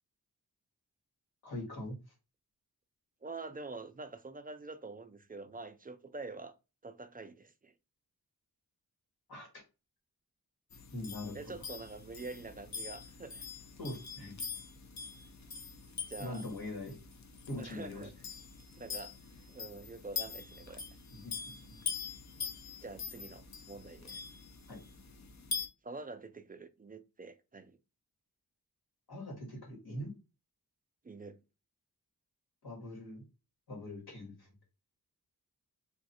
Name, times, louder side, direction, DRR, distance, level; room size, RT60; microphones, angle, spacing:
voice 1, 1.4-2.0 9.3-9.6 10.9-11.4 13.8-14.3 16.2-16.9 17.5-18.1 21.1-21.3 21.7-21.8 24.7-24.8 29.1-30.1 32.6-33.2 33.7-34.5, left 1 dB, 85° left, 1.4 m, -42 dB
voice 2, 3.2-6.5 6.8-7.7 11.3-13.5 16.1-16.4 17.6-18.1 18.8-19.1 19.5-20.8 22.8-24.2 25.8-27.8 31.0-31.4, right 3 dB, 25° right, 0.4 m, -46 dB
sound 1, 10.7-25.7, left 5 dB, 50° left, 0.6 m, -44 dB
2.5 x 2.4 x 4.1 m
wide cardioid pair, 85°, 37 cm